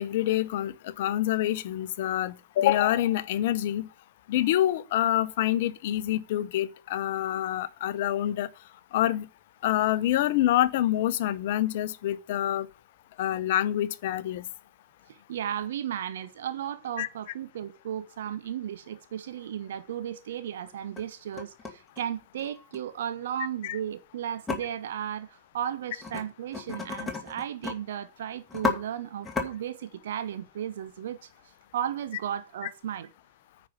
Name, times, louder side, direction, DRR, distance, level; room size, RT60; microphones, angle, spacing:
voice 1, 0.0-3.9 4.3-8.5 8.9-9.3 9.6-12.7 13.2-14.4 17.0-17.1 23.6-23.8, left 13 dB, 55° left, 0.7 m, -26 dB
voice 2, 15.1-31.3 31.7-33.1, right 10 dB, 60° right, 0.7 m, -35 dB
sound 1, 19.3-19.4 19.9-20.0 20.7-21.0 21.3-22.8 24.5-24.6 26.0-26.2 26.5-27.7 28.1-28.2 28.5-28.8 29.2-29.5, left 5 dB, 10° left, 2.3 m, -32 dB
9.5 x 5.2 x 7.2 m
figure-of-eight pair, 90°, 0 cm